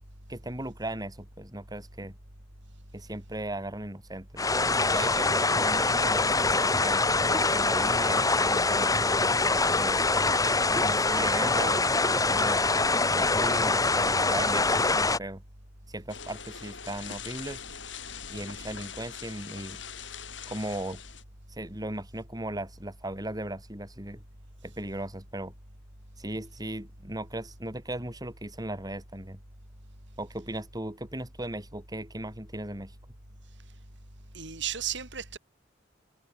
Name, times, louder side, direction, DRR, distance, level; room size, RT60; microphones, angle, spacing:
voice 1, 0.3-2.1 2.9-4.5 4.9-8.9 9.5-10.1 10.8-12.6 13.1-15.4 15.9-17.6 18.3-19.8 20.5-21.0 21.5-24.2 24.6-25.5 26.2-29.4 30.2-32.9, right 1 dB, 20° right, 5.0 m, -37 dB
sound 1, 4.4-15.2, left 3 dB, 20° left, 3.0 m, -24 dB
sound 2, 16.1-21.2, left 7 dB, 70° left, 6.9 m, -42 dB
voice 2, 34.3-35.4, right 9 dB, 65° right, 7.5 m, -34 dB
head